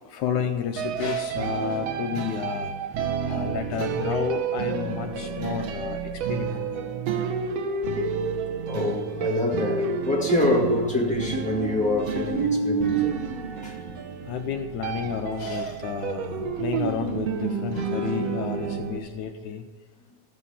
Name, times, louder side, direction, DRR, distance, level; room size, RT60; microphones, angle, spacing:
voice 1, 0.1-2.7 3.2-6.9 12.0-12.1 14.3-19.6, left 8 dB, 80° left, 2.0 m, -31 dB
sound 1, 0.7-19.0, right 5 dB, 70° right, 1.7 m, -29 dB
voice 2, 3.1-3.5 8.6-13.2 13.6-14.0, left 2 dB, 5° left, 1.2 m, -26 dB
14.5 x 8.4 x 5.7 m
omnidirectional pair, 3.6 m